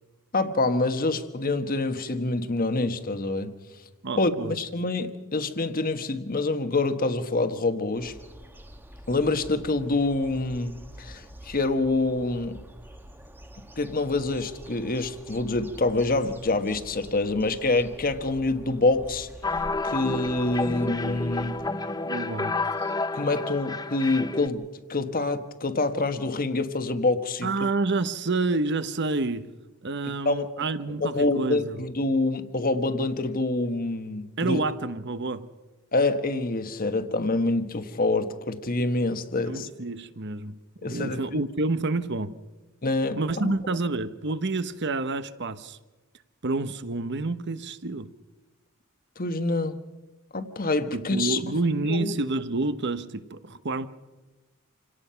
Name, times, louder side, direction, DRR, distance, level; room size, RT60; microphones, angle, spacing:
voice 1, 0.3-3.5 4.2-8.1 9.1-12.6 13.8-19.3 19.8-21.6 23.1-27.5 30.2-30.5 31.0-34.6 35.9-39.7 40.8-41.4 42.8-43.5 49.2-49.7 50.3-51.4 51.8-52.1, left 2 dB, 40° left, 1.3 m, -26 dB
voice 2, 4.0-4.6 22.0-22.6 22.8-22.9 27.4-29.5 29.8-31.8 34.4-35.5 39.5-42.4 43.2-45.8 46.4-48.1 50.9-53.9, right 3 dB, 50° right, 1.0 m, -28 dB
sound 1, 7.9-21.7, equal, 10° right, 1.2 m, -47 dB
sound 2, 19.4-24.5, left 3 dB, 20° left, 0.8 m, -30 dB
27.5 x 18.0 x 5.7 m
head